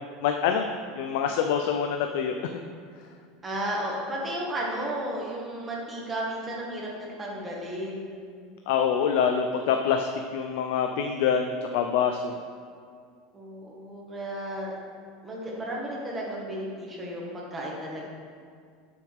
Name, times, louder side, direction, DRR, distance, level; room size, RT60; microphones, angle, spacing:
voice 1, 0.2-0.7 1.0-2.4 8.7-12.4, left 7 dB, 70° left, 5 dB, 0.5 m, -25 dB
voice 2, 3.4-8.2 13.3-14.8 15.2-18.1, right 1 dB, 15° right, -3 dB, 1.8 m, -33 dB
12.5 x 6.3 x 3.6 m, 2.2 s
supercardioid pair, 150°, 0 cm